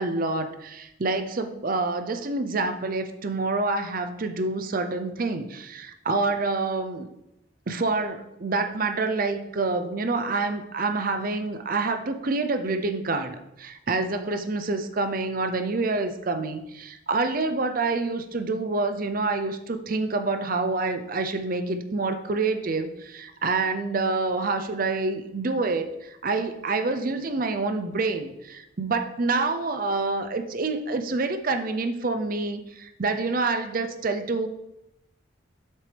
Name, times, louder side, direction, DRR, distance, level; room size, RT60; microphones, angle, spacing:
voice 1, 0.0-7.1 7.7-34.5, right 3 dB, 45° right, 8 dB, 0.6 m, -27 dB
7.7 x 6.1 x 3.4 m, 0.88 s
head